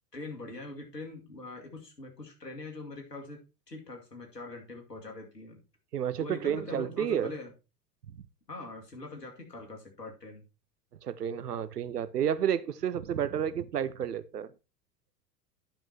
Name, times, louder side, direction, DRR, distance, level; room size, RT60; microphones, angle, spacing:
voice 1, 0.1-5.6 6.2-7.5 8.5-10.4, left 2 dB, 85° left, 2.5 m, -43 dB
voice 2, 5.9-7.3 8.1-8.2 11.0-14.5, right 9 dB, 75° right, 0.8 m, -31 dB
10.0 x 6.0 x 4.1 m
figure-of-eight pair, 85°, 48 cm